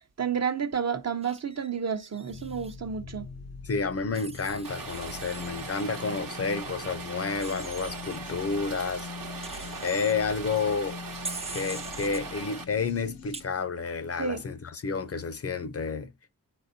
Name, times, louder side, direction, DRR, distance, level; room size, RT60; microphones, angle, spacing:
voice 1, 0.2-3.2 14.2-14.4, right 7 dB, 50° right, 0.7 m, -30 dB
Wild animals, 1.2-2.8 4.1-6.2 7.4-8.2 9.4-10.1 11.2-12.2 13.3-13.4, right 3 dB, 20° right, 0.4 m, -43 dB
sound 1, 2.3-13.4, left 5 dB, 85° left, 0.7 m, -43 dB
voice 2, 3.6-11.0 11.5-16.1, left 5 dB, 45° left, 0.5 m, -30 dB
Rain, 4.6-12.6, right 4 dB, 70° right, 1.0 m, -40 dB
9.4 x 4.3 x 2.7 m
wide cardioid pair, 80°, 35 cm